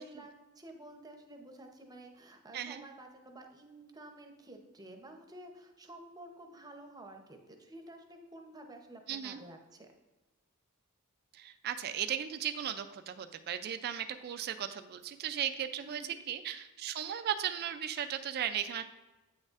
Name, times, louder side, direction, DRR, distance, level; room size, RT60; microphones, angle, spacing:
voice 1, 0.0-9.9 15.8-16.2, right 1 dB, 20° right, 4 dB, 0.7 m, -51 dB
voice 2, 9.1-9.4 11.3-18.8, right 9 dB, 45° right, 9 dB, 0.3 m, -36 dB
8.5 x 6.4 x 2.4 m, 1.1 s
head